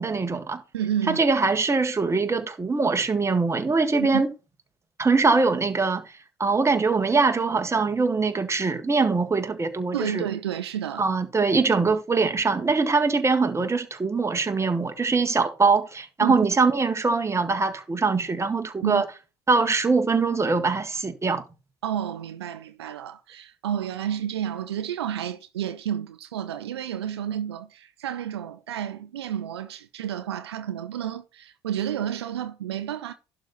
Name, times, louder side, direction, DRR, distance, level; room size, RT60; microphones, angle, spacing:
voice 1, 0.0-0.6 1.1-4.3 5.0-6.0 6.4-10.3 11.0-19.1 19.5-21.4, right 4 dB, 20° right, 1.7 m, -23 dB
voice 2, 0.7-1.2 4.0-4.2 9.9-11.1 16.2-16.4 18.8-19.0 21.8-33.1, right 10 dB, 85° right, 0.7 m, -30 dB
11.5 x 4.2 x 5.8 m
hypercardioid pair, 60°, 13 cm